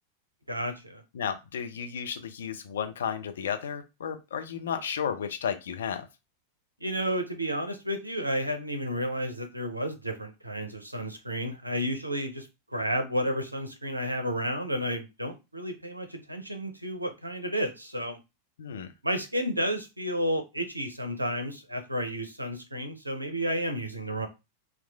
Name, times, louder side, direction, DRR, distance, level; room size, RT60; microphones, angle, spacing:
voice 1, 0.5-1.0 6.8-18.2 19.0-24.3, equal, 85° right, 6 dB, 0.5 m, -31 dB
voice 2, 1.1-6.1 18.6-18.9, left 8 dB, 65° left, 8 dB, 0.4 m, -33 dB
2.9 x 2.3 x 2.3 m, 0.25 s
figure-of-eight pair, 90°, 0 cm